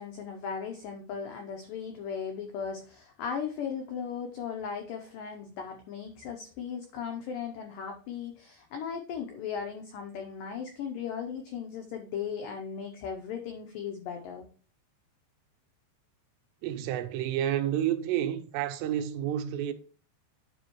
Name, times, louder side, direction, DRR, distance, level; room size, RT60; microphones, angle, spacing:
voice 1, 0.0-14.4, left 7 dB, 90° left, 1.9 m, -37 dB
voice 2, 16.6-19.7, right 11 dB, 85° right, 2.8 m, -30 dB
9.5 x 5.5 x 3.0 m
omnidirectional pair, 5.0 m